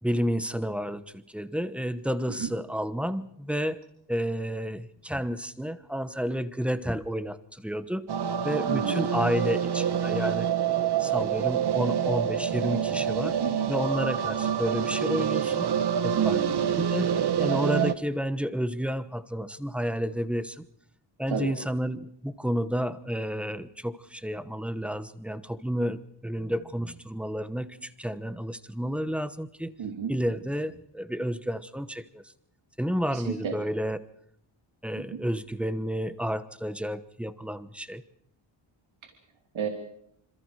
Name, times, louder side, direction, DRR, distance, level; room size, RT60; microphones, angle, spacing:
voice 1, 0.0-3.8 4.1-8.1 8.4-10.5 11.0-13.4 13.7-15.7 16.0-16.4 16.7-20.6 21.2-29.7 30.1-32.2 32.8-34.0 34.8-38.0, equal, ahead, 12 dB, 1.1 m, -31 dB
sound 1, 8.1-17.9, right 8 dB, 55° right, 1.2 m, -27 dB
voice 2, 8.7-9.0 13.2-13.5 16.1-16.7 21.3-21.5 29.8-30.1 33.1-33.5 35.0-35.2 39.5-39.7, right 7 dB, 70° right, 3 dB, 2.9 m, -31 dB
27.0 x 26.5 x 4.9 m, 0.71 s
wide cardioid pair, 150°, 48 cm